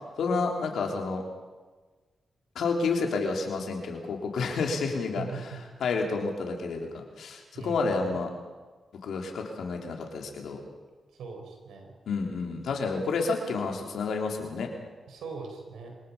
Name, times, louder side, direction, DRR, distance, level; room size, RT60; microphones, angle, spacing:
voice 1, 0.2-1.2 2.6-5.2 5.8-8.3 9.0-10.6 12.1-14.7, left 4 dB, 80° left, 1 dB, 3.7 m, -30 dB
voice 2, 5.1-5.6 7.5-8.2 11.1-11.9 15.1-16.0, right 5 dB, 85° right, 3 dB, 4.6 m, -41 dB
25.0 x 18.5 x 5.7 m, 1.3 s
cardioid pair, 60°, 0 cm